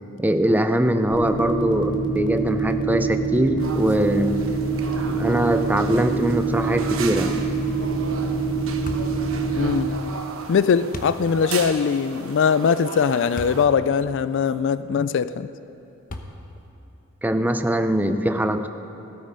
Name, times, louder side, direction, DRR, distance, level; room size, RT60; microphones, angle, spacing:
voice 1, 0.2-4.4 5.1-7.4 17.2-18.7, right 1 dB, 10° right, 8 dB, 0.5 m, -22 dB
sound 1, 1.1-9.8, right 3 dB, 20° left, 1.5 m, -25 dB
sound 2, 3.6-13.7, right 4 dB, 70° right, 1.1 m, -37 dB
sound 3, 8.9-9.2 10.9-11.2 13.4-13.7 14.3-14.4 16.1-16.6, left 2 dB, 40° left, 1.0 m, -35 dB
voice 2, 9.6-9.9 10.5-15.5, left 6 dB, 60° left, 14 dB, 0.4 m, -21 dB
17.5 x 12.5 x 5.3 m, 2.9 s
head